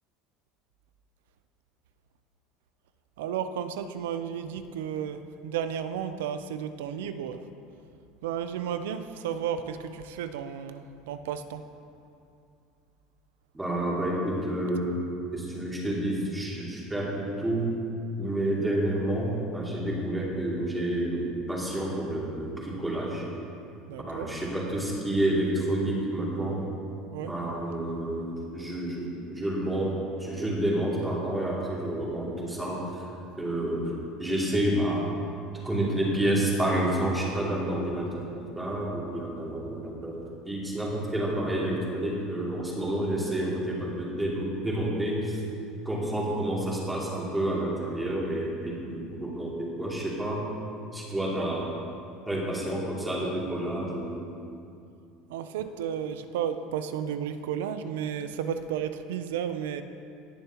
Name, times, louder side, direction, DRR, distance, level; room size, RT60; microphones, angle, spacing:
voice 1, 3.2-7.4 8.2-11.6 23.9-24.3 27.1-27.3 55.3-59.8, right 8 dB, 90° right, 10 dB, 0.5 m, -33 dB
voice 2, 13.5-15.0 15.3-17.7 18.2-23.2 24.1-26.6 27.2-33.0 33.4-33.9 34.2-35.1 35.6-40.2 40.4-45.4 45.8-50.5 50.9-51.8 52.3-54.2, right 1 dB, 10° right, -5 dB, 2.7 m, -29 dB
18.5 x 6.9 x 3.0 m, 2.5 s
supercardioid pair, 110°, 0 cm